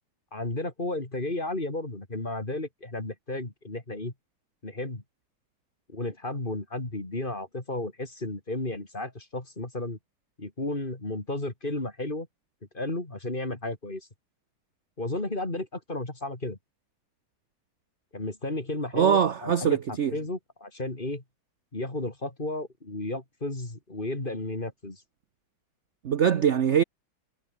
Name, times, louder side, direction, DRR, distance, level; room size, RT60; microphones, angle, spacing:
voice 1, 0.3-4.1 4.6-5.0 5.9-10.0 10.4-12.3 12.7-14.1 15.0-16.6 18.1-21.2 21.7-25.0, left 2 dB, 25° left, 3.5 m, -33 dB
voice 2, 18.9-20.1 26.0-26.8, right 8 dB, 55° right, 0.8 m, -22 dB
omnidirectional pair, 2.3 m